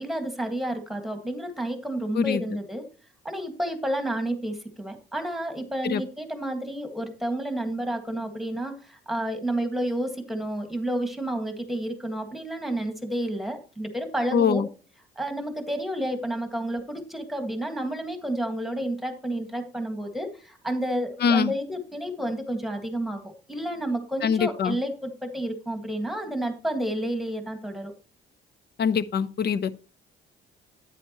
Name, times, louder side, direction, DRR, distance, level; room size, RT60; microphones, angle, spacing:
voice 1, 0.0-2.9 3.3-14.6 15.2-27.9, right 1 dB, ahead, 1.8 m, -30 dB
voice 2, 14.3-14.7 21.2-21.5 24.2-24.8 28.8-29.7, left 6 dB, 55° left, 0.7 m, -23 dB
10.0 x 9.1 x 3.0 m
cardioid pair, 90°, 20 cm